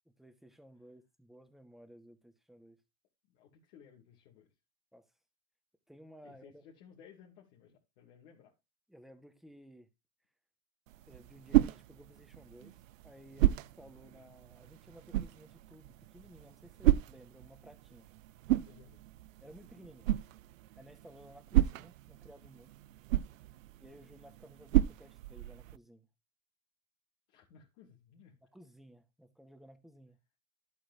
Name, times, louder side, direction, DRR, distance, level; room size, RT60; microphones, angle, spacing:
voice 1, 0.0-2.8 4.9-5.0 5.9-6.6 8.9-9.9 11.1-12.8 13.0-18.1 19.4-20.1 20.8-22.7 23.8-26.1 28.5-30.2, equal, ahead, 1.3 m, -56 dB
voice 2, 3.3-4.5 6.2-8.5 18.6-19.0 27.3-28.4, left 7 dB, 65° left, 2.7 m, -58 dB
sound 1, 10.9-25.8, right 15 dB, 85° right, 0.5 m, -33 dB
11.0 x 8.4 x 2.7 m
hypercardioid pair, 110°, 38 cm